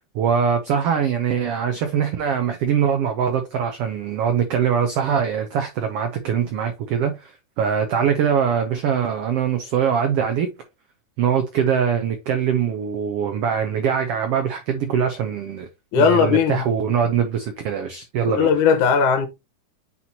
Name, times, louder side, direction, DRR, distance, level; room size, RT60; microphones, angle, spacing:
voice 1, 0.1-10.5 11.2-15.7 16.0-18.5, right 7 dB, 85° right, 1.3 m, -22 dB
voice 2, 15.9-16.6 18.3-19.3, left 6 dB, 75° left, 2.5 m, -17 dB
8.6 x 4.2 x 2.8 m
omnidirectional pair, 3.6 m